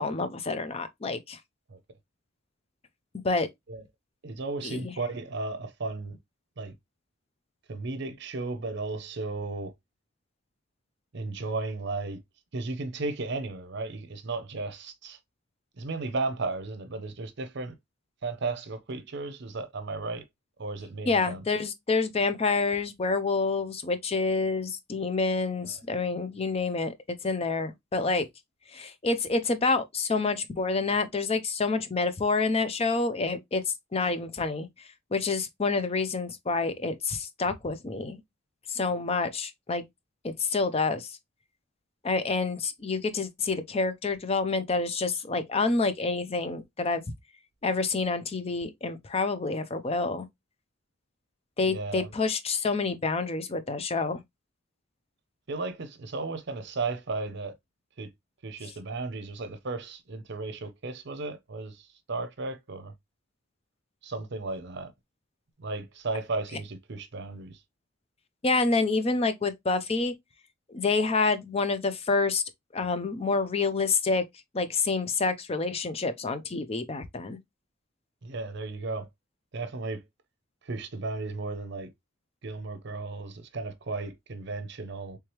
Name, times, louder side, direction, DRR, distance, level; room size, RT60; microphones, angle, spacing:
voice 1, 0.0-1.4 3.2-3.5 4.6-4.9 21.1-28.2 28.7-33.6 33.9-34.7 35.1-38.2 38.7-39.8 40.2-41.1 42.0-47.0 47.6-50.3 51.6-54.2 68.4-70.1 70.7-72.4 72.7-74.2 74.5-77.4, left 3 dB, 30° left, 0.5 m, -28 dB
voice 2, 4.2-6.2 6.6-6.7 7.7-9.7 11.1-12.2 12.5-15.2 15.8-17.7 18.2-20.2 20.6-21.4 25.6-25.8 34.0-34.1 51.7-52.1 55.5-57.5 58.0-58.1 58.4-62.9 64.0-64.9 65.6-67.6 78.2-79.1 79.5-80.0 80.6-81.9 82.4-85.2, right 3 dB, 55° right, 0.6 m, -34 dB
3.4 x 3.2 x 2.9 m
head